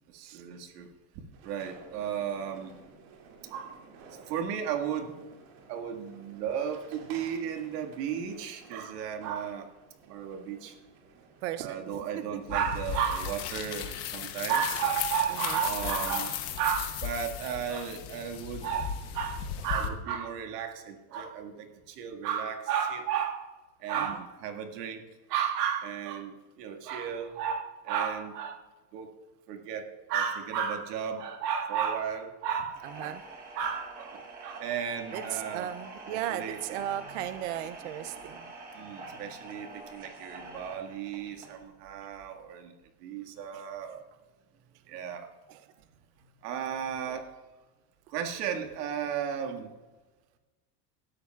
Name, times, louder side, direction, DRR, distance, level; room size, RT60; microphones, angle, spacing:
voice 1, 0.1-0.9 1.4-2.7 3.5-3.8 4.3-5.2 5.7-9.7 10.1-10.7 11.6-23.4 23.8-25.0 25.3-28.6 28.9-29.1 29.5-33.2 33.6-35.7 36.1-37.2 38.0-38.3 38.7-42.7 43.0-44.0 44.9-45.3 46.4-47.3 48.1-49.7, right 8 dB, 85° right, 4 dB, 1.9 m, -34 dB
sound 1, 1.3-20.0, right 4 dB, 65° right, 2.7 m, -54 dB
voice 2, 11.4-11.8 15.4-15.6 33.0-33.2 35.1-38.5 43.5-43.6 45.5-45.6 47.1-47.2, right 12 dB, 50° right, 11 dB, 0.5 m, -36 dB
sound 2, 12.5-19.9, left 9 dB, 35° left, 0.9 m, -36 dB
sound 3, 32.7-41.6, right 3 dB, 20° right, 1.1 m, -46 dB
18.5 x 13.0 x 2.4 m, 1.2 s
supercardioid pair, 180°, 47 cm